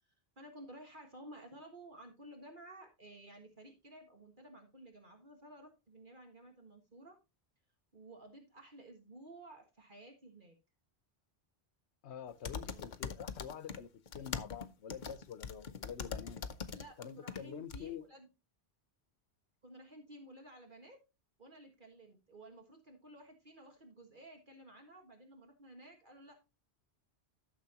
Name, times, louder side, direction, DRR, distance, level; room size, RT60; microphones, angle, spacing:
voice 1, 0.4-7.2 7.9-10.6 16.7-18.3 19.6-21.0 21.4-26.3, right 1 dB, 50° right, 1.8 m, -54 dB
voice 2, 12.0-16.4 17.0-18.0, left 8 dB, 80° left, 1.1 m, -47 dB
sound 1, 12.4-13.8 14.1-17.4 17.7-17.8, left 6 dB, 50° left, 0.8 m, -41 dB
13.0 x 6.8 x 2.9 m
omnidirectional pair, 1.1 m